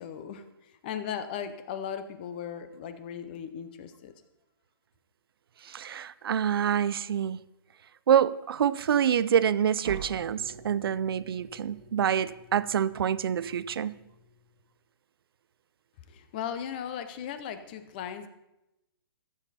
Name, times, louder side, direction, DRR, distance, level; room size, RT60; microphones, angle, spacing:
voice 1, 0.0-4.1 16.1-18.3, left 8 dB, 25° left, 0.6 m, -37 dB
voice 2, 5.6-7.4 8.1-13.9, right 9 dB, 70° right, 0.4 m, -26 dB
sound 1, 9.8-14.6, right 5 dB, 55° right, 1.5 m, -46 dB
14.5 x 7.2 x 4.2 m
hypercardioid pair, 170°, 13 cm